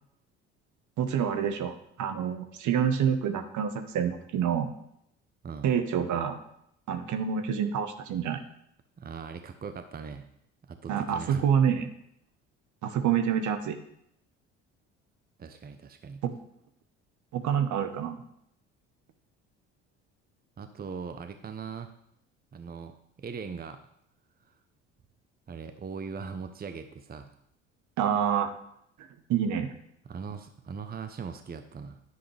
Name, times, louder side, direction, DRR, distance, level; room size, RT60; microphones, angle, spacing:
voice 1, 1.0-4.7 5.6-6.4 6.9-8.4 10.9-11.9 12.8-13.8 16.2-16.3 17.3-18.2 28.0-28.5 29.3-29.7, right 8 dB, 55° right, 8 dB, 1.3 m, -27 dB
voice 2, 9.0-10.3 10.6-11.4 15.4-16.2 20.6-21.9 22.5-23.8 25.5-27.3 30.1-32.0, right 5 dB, 25° right, 8 dB, 0.9 m, -40 dB
10.5 x 9.3 x 3.4 m, 0.73 s
hypercardioid pair, 55°, 35 cm